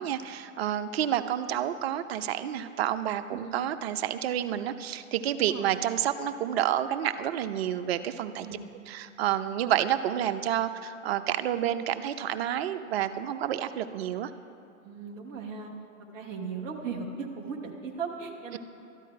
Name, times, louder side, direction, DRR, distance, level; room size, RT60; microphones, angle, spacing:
voice 1, 0.0-8.5 8.9-14.3, right 11 dB, 50° right, 10 dB, 0.7 m, -29 dB
voice 2, 5.3-5.8 8.3-8.7 14.8-15.7 16.1-18.6, right 5 dB, 5° right, -2 dB, 0.3 m, -37 dB
13.0 x 10.5 x 4.7 m, 2.7 s
hypercardioid pair, 120°, 40 cm